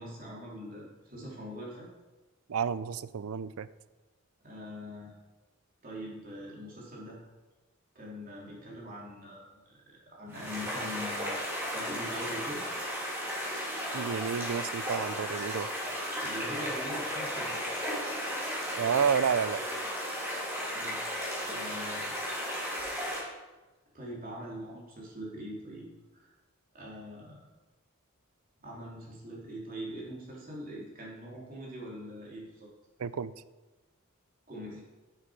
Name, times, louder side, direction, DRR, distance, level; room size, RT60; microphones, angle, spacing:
voice 1, 0.0-1.9 4.4-5.1 5.8-7.2 7.9-12.6 16.2-17.6 20.7-22.1 23.9-25.9 26.1-26.3 26.7-27.4 28.6-32.7 34.5-34.8, equal, 40° right, -4 dB, 3.1 m, -42 dB
voice 2, 2.5-3.7 13.9-15.7 18.8-19.6 33.0-33.3, right 7 dB, 80° right, 16 dB, 0.4 m, -30 dB
sound 1, 10.3-23.2, equal, 10° right, 3.0 m, -35 dB
10.0 x 7.5 x 4.8 m, 1.2 s
head